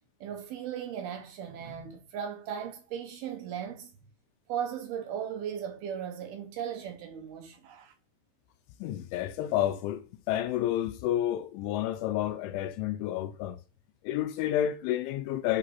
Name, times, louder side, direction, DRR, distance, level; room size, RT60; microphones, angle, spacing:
voice 1, 0.2-3.9 4.5-7.9, right 8 dB, 70° right, 2.6 m, -37 dB
voice 2, 8.8-13.6 14.0-15.6, left 12 dB, 85° left, 3.0 m, -30 dB
11.0 x 4.9 x 5.8 m
omnidirectional pair, 5.5 m